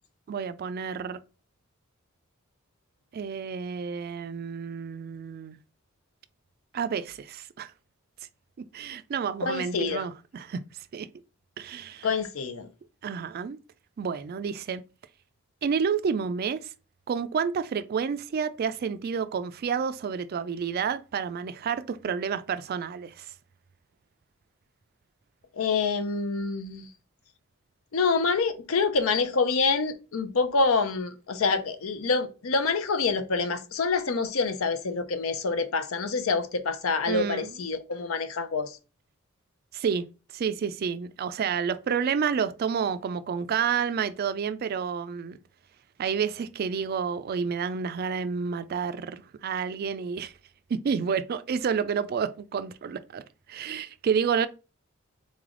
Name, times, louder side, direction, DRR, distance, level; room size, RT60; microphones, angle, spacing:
voice 1, 0.3-1.2 3.1-5.6 6.7-7.7 8.7-10.6 10.9-11.1 11.6-12.1 13.0-13.6 14.0-14.8 15.6-16.6 17.1-23.3 37.1-37.5 39.7-40.1 40.3-45.4 46.0-50.3 50.7-53.2 53.5-54.5, right 6 dB, 45° right, 0.3 m, -29 dB
voice 2, 9.4-10.0 12.0-12.7 25.6-26.9 27.9-38.8, left 4 dB, 75° left, 0.6 m, -26 dB
3.8 x 3.2 x 3.7 m
head